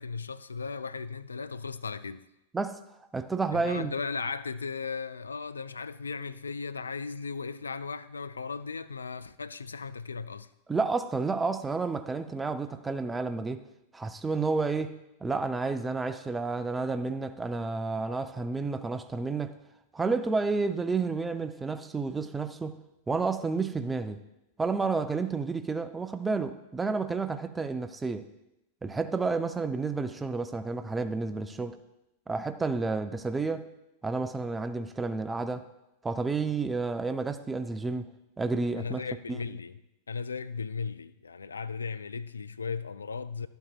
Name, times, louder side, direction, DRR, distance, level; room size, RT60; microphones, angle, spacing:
voice 1, 0.0-2.2 3.5-10.5 38.8-39.8 40.1-43.5, left 5 dB, 75° left, 0.3 m, -36 dB
voice 2, 3.1-3.9 10.7-13.6 13.9-14.9 15.2-19.5 19.9-22.8 23.1-24.2 24.6-28.3 28.8-31.8 32.3-33.7 34.0-35.6 36.0-38.1 38.4-39.0, right 4 dB, 10° right, 0.4 m, -30 dB
12.0 x 8.0 x 2.4 m
figure-of-eight pair, 90°, 0 cm